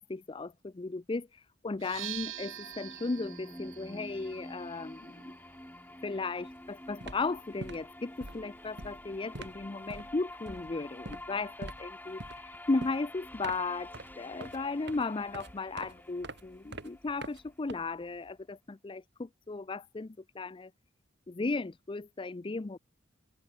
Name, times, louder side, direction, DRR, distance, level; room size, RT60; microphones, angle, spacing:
voice 1, 0.1-5.3 6.0-20.7 21.3-22.8, left 3 dB, 25° left, 0.4 m, -36 dB
sound 1, 1.7-9.5, right 12 dB, 85° right, 6.3 m, -48 dB
sound 2, 2.0-18.0, left 1 dB, 10° left, 6.2 m, -48 dB
sound 3, 6.4-6.6 6.9-18.3, right 2 dB, 60° right, 4.0 m, -46 dB
open air
head